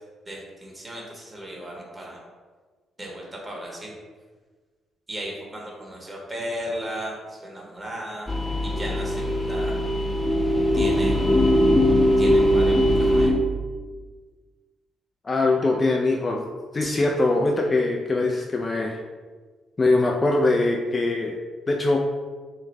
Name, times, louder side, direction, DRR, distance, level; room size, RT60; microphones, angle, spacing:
voice 1, 0.3-2.2 3.0-3.9 5.1-8.3 8.6-9.7 10.7-11.3 12.2-13.3 16.8-17.0, equal, 30° right, -2 dB, 1.2 m, -36 dB
sound 1, 8.3-13.3, equal, 5° left, 0.7 m, -20 dB
voice 2, 15.2-16.5 16.7-19.0 19.8-21.4 21.7-22.0, left 2 dB, 35° left, 1 dB, 0.4 m, -22 dB
3.9 x 2.5 x 3.1 m, 1.4 s
hypercardioid pair, 40°, 0 cm